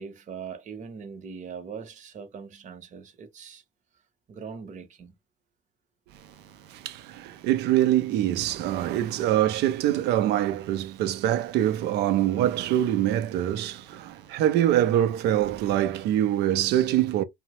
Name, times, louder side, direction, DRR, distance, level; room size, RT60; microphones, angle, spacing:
voice 1, 0.0-3.6 4.3-5.1, right 6 dB, 45° right, 0.8 m, -41 dB
voice 2, 6.7-17.2, right 12 dB, 85° right, 0.5 m, -24 dB
2.7 x 2.0 x 2.9 m
cardioid pair, 110°, 17 cm